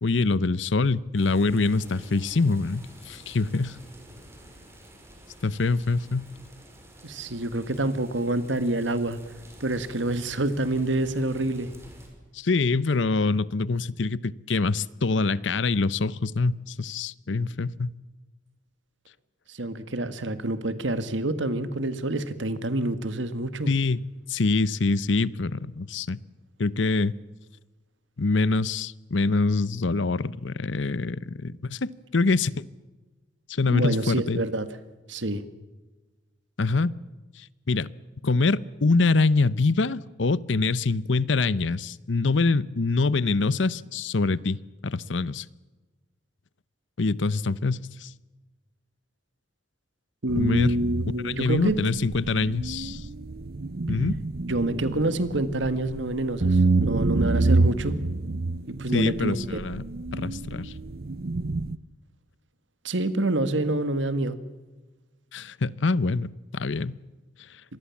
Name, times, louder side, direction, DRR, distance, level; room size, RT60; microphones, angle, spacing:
voice 1, 0.0-3.8 5.4-6.3 12.3-17.9 23.7-24.0 24.3-26.2 26.6-27.1 28.2-32.6 33.5-34.4 36.6-36.9 37.4-37.9 38.2-45.4 47.0-48.1 50.4-50.8 51.2-53.1 53.9-54.2 58.9-59.9 60.1-60.7 65.3-67.0, left 3 dB, 75° left, 20 dB, 0.8 m, -25 dB
sound 1, 1.2-12.1, equal, 15° right, 5.6 m, -49 dB
voice 2, 7.0-9.2 9.6-11.7 19.5-23.7 33.7-34.7 35.1-35.4 50.2-51.8 54.5-58.0 58.7-59.6 62.8-64.4, right 2 dB, 75° right, 12 dB, 1.9 m, -27 dB
sound 2, 50.3-61.8, right 3 dB, 55° right, 0.7 m, -28 dB
26.0 x 20.0 x 7.3 m, 1.2 s
head